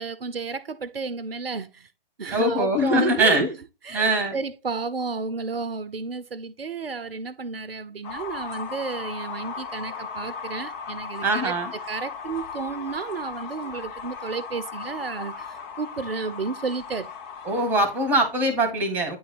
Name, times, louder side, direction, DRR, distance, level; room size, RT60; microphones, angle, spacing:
voice 1, 0.0-1.9 2.2-3.6 3.8-11.6 11.9-17.1, right 4 dB, 75° right, 0.7 m, -32 dB
voice 2, 2.3-3.5 3.9-4.4 11.2-11.7 17.5-19.2, right 1 dB, 5° right, 1.7 m, -22 dB
sound 1, 8.0-18.4, left 6 dB, 20° left, 0.7 m, -37 dB
9.4 x 3.9 x 4.1 m
figure-of-eight pair, 125°, 30 cm